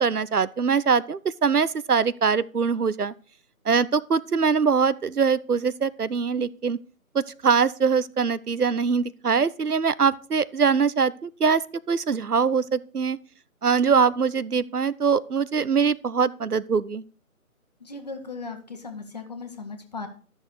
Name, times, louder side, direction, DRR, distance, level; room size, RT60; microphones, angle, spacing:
voice 1, 0.0-3.1 3.7-6.8 7.1-11.6 11.9-13.2 13.6-17.0, right 5 dB, 90° right, 0.7 m, -23 dB
voice 2, 17.8-20.1, left 4 dB, 30° left, 1.2 m, -37 dB
12.5 x 6.3 x 4.8 m
figure-of-eight pair, 150°, 44 cm